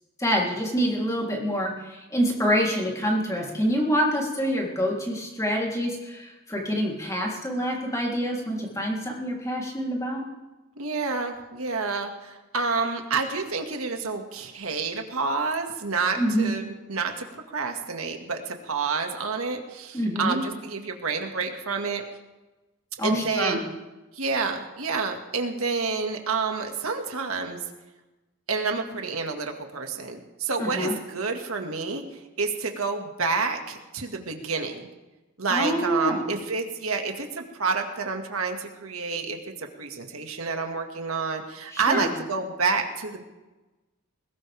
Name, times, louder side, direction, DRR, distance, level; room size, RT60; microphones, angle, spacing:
voice 1, 0.2-10.2 16.2-16.5 19.9-20.4 23.0-23.6 30.6-30.9 35.5-36.4 41.7-42.1, equal, 15° left, -2 dB, 3.3 m, -26 dB
voice 2, 10.8-17.3 17.5-22.0 23.0-23.6 24.2-27.6 28.5-32.0 32.4-34.9 35.4-43.2, right 4 dB, 85° right, 4 dB, 2.0 m, -29 dB
21.0 x 18.0 x 3.5 m, 1.1 s
head